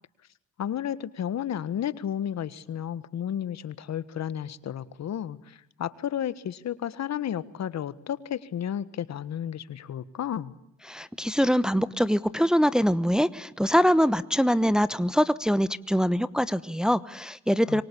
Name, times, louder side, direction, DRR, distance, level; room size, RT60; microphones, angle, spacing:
voice 1, 0.6-10.5 17.7-17.8, left 9 dB, 60° left, 15 dB, 1.6 m, -32 dB
voice 2, 10.9-17.8, equal, ahead, 14 dB, 1.1 m, -23 dB
26.5 x 24.0 x 8.5 m, 0.80 s
cardioid pair, 90°, 30 cm